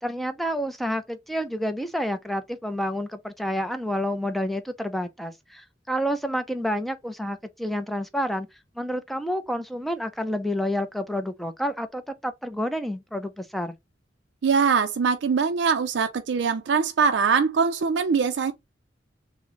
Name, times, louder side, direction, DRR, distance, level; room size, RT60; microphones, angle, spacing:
voice 1, 0.0-8.5 8.8-13.7, equal, ahead, 0.4 m, -29 dB
voice 2, 14.4-18.5, right 5 dB, 65° right, 0.4 m, -22 dB
6.2 x 2.1 x 2.9 m
head